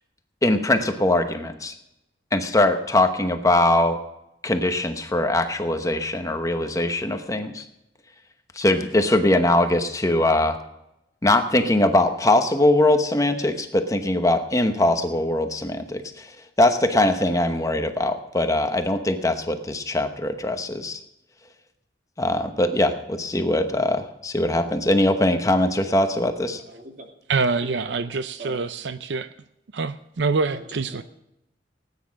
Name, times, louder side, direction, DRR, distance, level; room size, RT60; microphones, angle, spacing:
voice 1, 0.4-1.7 2.3-4.0 4.4-7.6 8.5-10.6 11.2-16.3 16.6-21.0 22.2-26.6, left 1 dB, 20° left, 7 dB, 1.0 m, -21 dB
voice 2, 26.6-27.1 27.7-28.0 28.4-28.6 30.5-31.0, right 2 dB, 45° right, 2 dB, 2.7 m, -41 dB
voice 3, 27.3-29.3 29.7-31.0, right 4 dB, 80° right, 12 dB, 0.6 m, -25 dB
17.5 x 9.6 x 6.3 m, 0.85 s
head